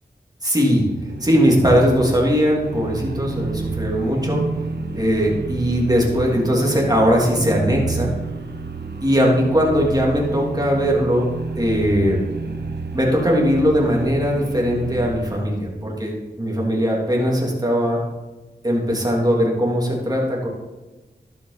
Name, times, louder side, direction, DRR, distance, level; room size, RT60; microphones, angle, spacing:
voice 1, 0.4-0.9 1.2-4.4 4.9-8.1 9.0-11.3 11.6-12.2 12.9-18.0 18.6-20.5, equal, 25° right, -2 dB, 3.0 m, -19 dB
sound 1, 0.8-15.6, right 4 dB, 85° right, 0.8 m, -30 dB
11.0 x 8.1 x 4.1 m, 1.2 s
cardioid pair, 40°, 17 cm